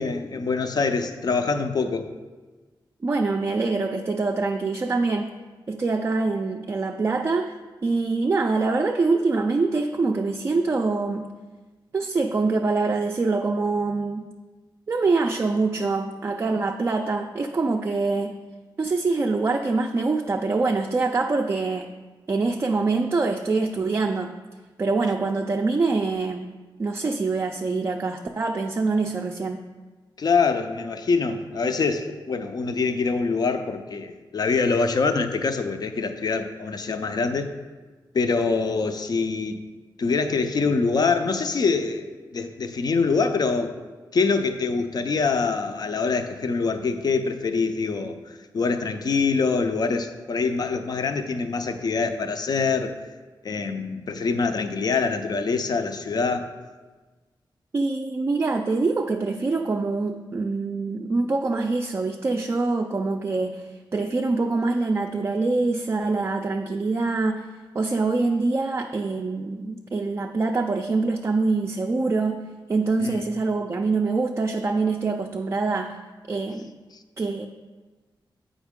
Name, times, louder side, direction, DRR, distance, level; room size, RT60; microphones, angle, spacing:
voice 1, 0.0-2.1 30.2-37.5 38.1-39.6 40.0-42.1 42.3-43.7 44.1-52.9 53.4-56.5 73.0-73.2, left 4 dB, 55° left, 8 dB, 0.5 m, -24 dB
voice 2, 3.0-5.4 5.7-7.5 7.8-11.4 11.9-14.3 14.9-18.4 18.8-21.9 22.3-24.3 24.8-26.5 26.8-29.6 57.7-76.0 76.3-76.7 77.2-77.5, right 3 dB, 30° right, 3 dB, 0.3 m, -24 dB
8.0 x 5.0 x 3.6 m, 1.3 s
wide cardioid pair, 135°, 8 cm